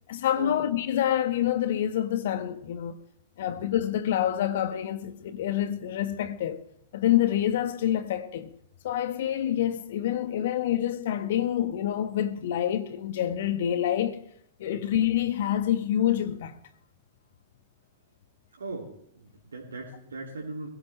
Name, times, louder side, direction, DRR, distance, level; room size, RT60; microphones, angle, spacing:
voice 1, 0.1-2.9 3.4-6.6 6.9-8.5 8.8-14.2 14.6-16.6, left 11 dB, 55° left, 1.5 m, -27 dB
voice 2, 18.6-20.7, right 3 dB, 70° right, 2.9 m, -39 dB
22.0 x 16.5 x 3.4 m
figure-of-eight pair, 100°, 0 cm